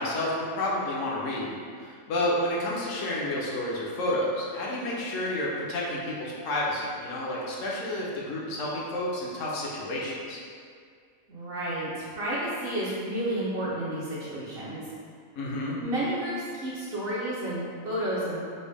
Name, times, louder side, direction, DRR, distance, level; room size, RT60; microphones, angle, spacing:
voice 1, 0.0-10.4 15.3-15.8, left 1 dB, 70° left, -5 dB, 0.9 m, -30 dB
voice 2, 11.3-14.8 15.8-18.4, right 1 dB, 55° right, -8 dB, 0.7 m, -31 dB
4.0 x 2.0 x 3.3 m, 2.1 s
omnidirectional pair, 1.5 m